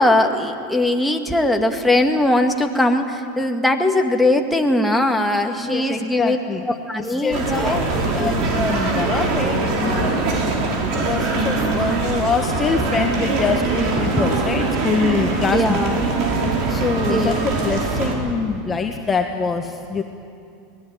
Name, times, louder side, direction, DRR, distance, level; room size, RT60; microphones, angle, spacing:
voice 1, 0.0-6.4 6.7-8.3 15.5-16.0 17.1-17.5, left 1 dB, 5° left, 3 dB, 2.0 m, -20 dB
voice 2, 5.6-6.6 7.0-10.5 11.0-15.8 16.7-20.0, left 5 dB, 20° left, 4 dB, 1.5 m, -24 dB
sound 1, 7.3-18.1, right 3 dB, 55° right, 4.8 m, -22 dB
23.5 x 18.0 x 9.2 m, 2.4 s
hypercardioid pair, 95°, 0 cm